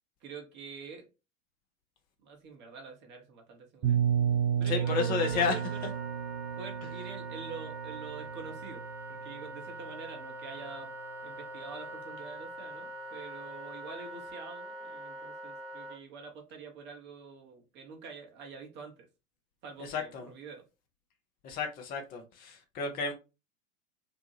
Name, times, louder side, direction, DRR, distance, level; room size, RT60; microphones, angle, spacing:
voice 1, 0.2-1.1 2.2-4.0 4.6-5.9 6.6-8.8 9.1-10.9 11.2-19.1 19.6-20.6 22.8-23.0, right 5 dB, 25° right, 0.8 m, -46 dB
sound 1, 3.8-9.6, right 8 dB, 50° right, 1.2 m, -32 dB
voice 2, 4.7-5.5 19.8-20.3 21.4-23.1, left 5 dB, 20° left, 0.5 m, -32 dB
Wind instrument woodwind instrument, 4.7-16.0, right 2 dB, 5° right, 1.0 m, -43 dB
2.7 x 2.2 x 3.0 m
figure-of-eight pair, 90°, 41 cm